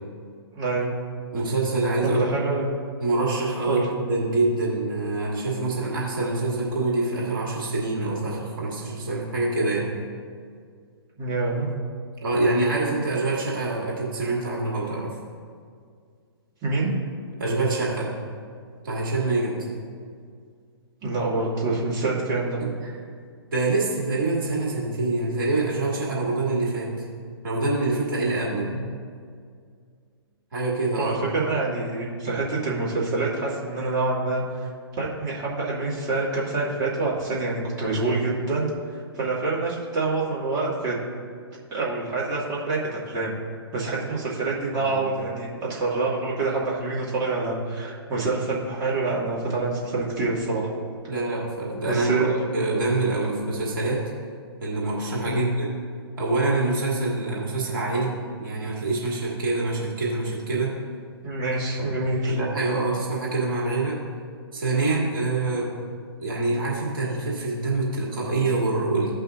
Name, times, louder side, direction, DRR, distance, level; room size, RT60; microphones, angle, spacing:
voice 1, 0.5-0.9 2.0-2.8 3.7-3.9 11.2-11.7 16.6-16.9 21.0-22.6 28.5-28.8 31.0-34.4 35.0-38.7 39.1-41.0 41.7-43.4 43.7-50.7 51.9-52.4 55.2-55.5 61.2-62.4, right 3 dB, 25° right, -6 dB, 2.2 m, -26 dB
voice 2, 1.3-2.2 3.0-9.9 12.2-15.1 17.4-18.1 18.8-19.5 22.6-22.7 23.5-26.9 27.4-28.7 30.5-31.2 44.7-45.1 51.1-54.0 54.6-55.7 56.2-58.1 58.4-60.7 61.8-61.9 62.3-64.0 64.5-65.7 66.2-69.1, right 2 dB, 50° right, -4 dB, 2.3 m, -25 dB
15.5 x 5.6 x 2.6 m, 2.1 s
figure-of-eight pair, 125°, 14 cm